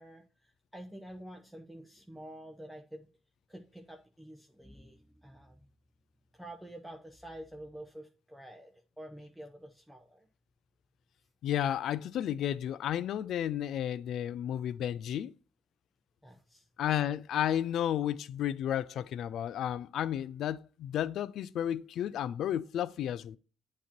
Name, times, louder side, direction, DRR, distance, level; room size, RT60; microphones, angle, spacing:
voice 1, 0.0-3.1 3.5-5.6 6.3-8.7 9.0-10.3 16.2-16.6, right 1 dB, 5° right, 0.9 m, -48 dB
voice 2, 11.4-15.3 16.8-23.4, left 10 dB, 75° left, 0.3 m, -32 dB
8.2 x 3.0 x 4.3 m
cardioid pair, 90°, 0 cm